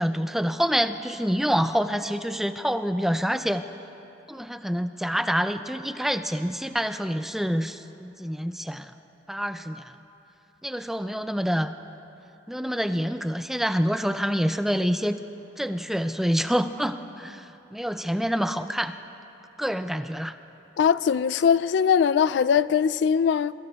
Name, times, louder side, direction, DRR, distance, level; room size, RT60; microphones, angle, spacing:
voice 1, 0.0-3.6 4.3-8.9 9.3-9.9 10.6-11.7 12.5-15.2 15.6-18.9 19.6-20.3, equal, ahead, 0.4 m, -27 dB
voice 2, 20.8-23.5, left 7 dB, 75° left, 0.3 m, -21 dB
27.0 x 22.0 x 2.4 m
head